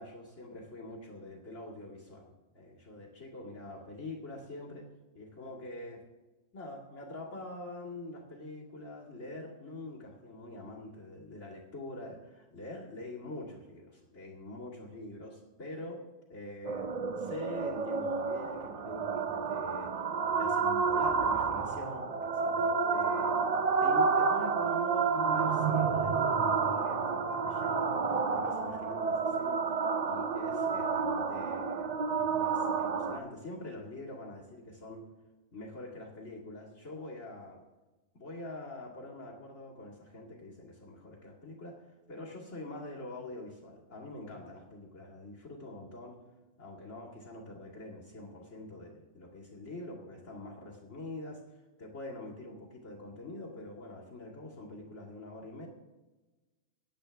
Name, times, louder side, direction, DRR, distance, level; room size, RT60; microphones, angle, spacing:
voice 1, 0.0-4.9 5.1-6.0 6.5-16.0 16.3-16.9 17.2-23.4 23.8-35.0 35.5-37.6 38.1-46.2 46.6-51.4 51.8-55.7, left 2 dB, 70° left, -4 dB, 2.5 m, -45 dB
sound 1, 16.6-33.2, right 5 dB, 45° right, 0.6 m, -30 dB
17.5 x 10.0 x 3.4 m, 1.2 s
omnidirectional pair, 1.3 m